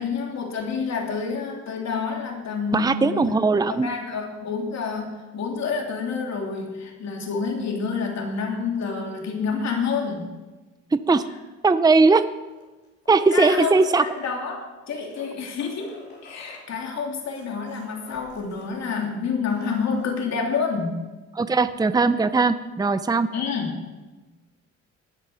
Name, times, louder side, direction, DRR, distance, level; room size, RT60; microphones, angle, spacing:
voice 1, 0.0-3.2 3.7-10.3 13.3-21.0 23.3-23.8, left 5 dB, 60° left, 0 dB, 3.2 m, -28 dB
voice 2, 2.7-3.9 10.9-11.2 11.6-12.2 13.1-14.0 21.4-23.3, right 3 dB, 15° right, 12 dB, 0.6 m, -19 dB
sound 1, 12.4-14.3 15.0-18.7 19.0-19.1 19.4-20.2 21.7-21.8, left 2 dB, 35° left, 4.6 m, -47 dB
19.5 x 8.6 x 6.4 m, 1.2 s
cardioid pair, 90°, 30 cm